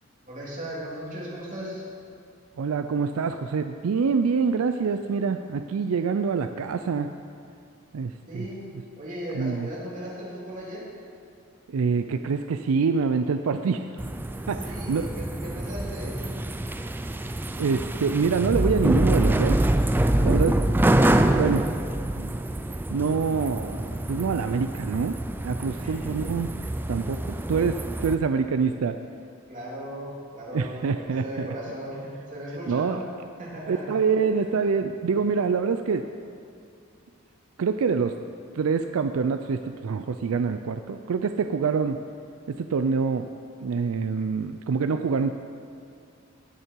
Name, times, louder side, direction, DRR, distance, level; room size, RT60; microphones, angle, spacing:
voice 1, 0.3-1.8 8.3-8.6 9.0-10.8 14.6-16.4 20.1-20.3 25.8-26.3 29.5-33.0 33.4-33.9 34.3-34.5, equal, 40° right, -6 dB, 3.2 m, -37 dB
voice 2, 2.6-7.1 7.9-8.5 9.3-9.7 11.7-13.9 14.5-15.1 17.6-19.6 19.9-20.6 21.3-21.7 22.2-22.3 22.9-25.2 25.4-26.5 26.9-29.0 30.5-31.5 32.7-33.0 33.7-36.1 37.6-38.2 38.5-42.0 42.5-43.3 43.6-45.3, right 5 dB, 85° right, 8 dB, 0.4 m, -26 dB
sound 1, 14.0-28.1, right 1 dB, 10° right, 0.3 m, -26 dB
18.0 x 6.6 x 4.6 m, 2.4 s
head